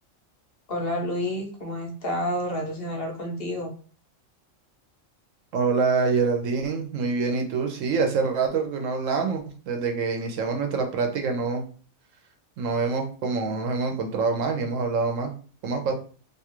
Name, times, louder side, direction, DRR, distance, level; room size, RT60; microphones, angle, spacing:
voice 1, 0.7-3.7, left 1 dB, 55° left, 2 dB, 0.8 m, -29 dB
voice 2, 5.5-11.6 12.6-15.3 15.6-15.9, right 4 dB, 80° right, 4 dB, 1.0 m, -25 dB
2.6 x 2.3 x 2.9 m, 0.40 s
omnidirectional pair, 1.3 m